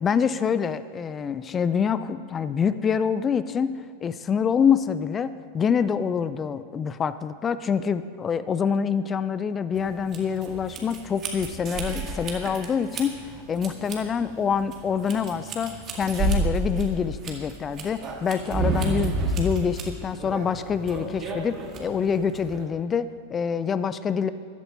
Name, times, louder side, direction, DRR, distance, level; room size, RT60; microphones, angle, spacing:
voice 1, 0.0-3.7 4.0-13.1 13.5-24.3, left 7 dB, 20° left, 14 dB, 0.4 m, -26 dB
sound 1, 9.7-22.6, right 2 dB, 30° right, 1.9 m, -31 dB
14.5 x 12.0 x 4.1 m, 2.4 s
figure-of-eight pair, 90°, 0 cm